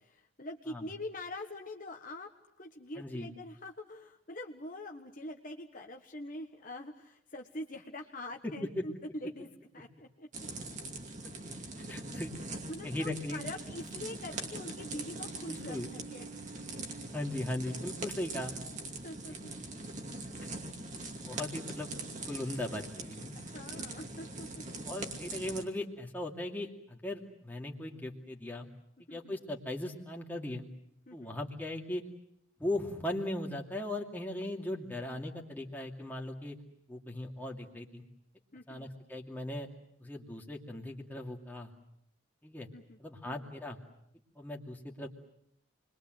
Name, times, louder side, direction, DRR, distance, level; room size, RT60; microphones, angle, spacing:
voice 1, 0.0-2.3 2.6-10.5 12.7-16.2 19.0-19.5 23.3-24.8 29.1-29.4 31.1-31.4 38.5-38.9 42.7-43.0 43.2-43.5, left 1 dB, 40° left, 3 dB, 1.4 m, -44 dB
voice 2, 3.0-3.3 11.4-12.3 12.8-13.4 15.4-15.9 17.1-18.5 21.3-23.4 24.9-28.7 29.1-30.7 31.1-32.0 32.6-36.6 36.9-38.0 38.7-39.7 40.0-41.7 42.4-42.7 43.0-43.8 44.4-45.1, left 1 dB, 10° left, 0 dB, 2.6 m, -38 dB
sound 1, 10.3-25.6, right 2 dB, 35° right, 2.6 m, -42 dB
sound 2, 14.6-21.0, right 6 dB, 70° right, 3.7 m, -54 dB
29.0 x 22.5 x 7.9 m, 0.75 s
head